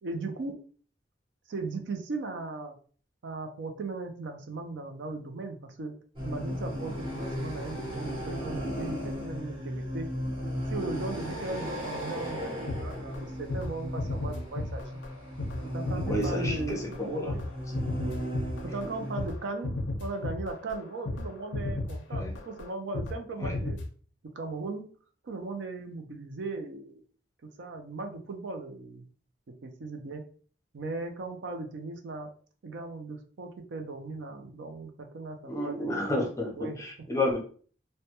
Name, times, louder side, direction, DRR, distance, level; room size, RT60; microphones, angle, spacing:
voice 1, 0.0-0.6 1.5-2.8 3.2-5.9 6.2-10.1 10.7-15.0 15.7-17.5 18.0-18.2 18.7-23.8 24.3-24.9 25.2-27.0 27.6-29.1 29.6-30.2 30.7-32.3 32.6-35.9 36.5-36.8, right 3 dB, 65° right, 5 dB, 0.4 m, -37 dB
sound 1, 6.2-19.3, equal, 25° right, 0.8 m, -36 dB
sound 2, 12.7-13.2 13.5-13.7 14.0-15.1 15.4-23.2 23.4-23.9, left 2 dB, 70° left, 0.4 m, -34 dB
voice 2, 16.1-17.3 22.1-22.3 23.4-23.6 35.5-37.4, left 1 dB, 15° left, -1 dB, 0.5 m, -31 dB
2.2 x 2.1 x 2.8 m, 0.43 s
head